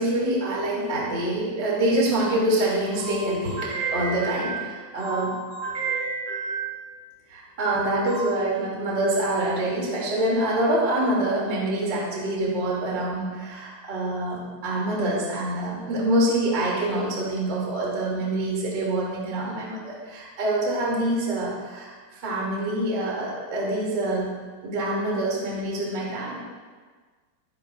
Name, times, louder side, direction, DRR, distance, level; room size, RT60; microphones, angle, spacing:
voice 1, 0.0-6.8 7.3-24.3 24.6-26.4, right 1 dB, 30° right, -5 dB, 2.7 m, -26 dB
23.0 x 10.5 x 2.6 m, 1.5 s
omnidirectional pair, 5.3 m